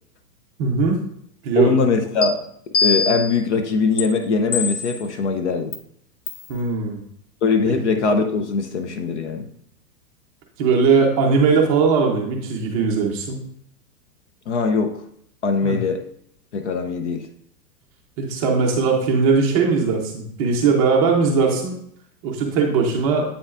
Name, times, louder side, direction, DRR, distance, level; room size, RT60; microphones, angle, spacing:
voice 1, 0.6-1.0 1.4-1.7 6.5-7.0 7.7-7.8 10.6-13.4 15.6-15.8 18.2-21.8 22.2-23.2, right 5 dB, 20° right, 0 dB, 0.7 m, -19 dB
voice 2, 1.6-2.4 2.8-5.7 7.4-9.5 14.5-15.0 15.4-16.1 16.5-17.3, left 4 dB, 45° left, 7 dB, 0.5 m, -21 dB
sound 1, 2.2-2.3 2.7-3.4 4.0-4.1 4.5-5.0 5.7-5.8 6.3-6.5, left 4 dB, 85° left, 1.3 m, -22 dB
8.4 x 5.4 x 2.4 m, 0.69 s
supercardioid pair, 165°, 49 cm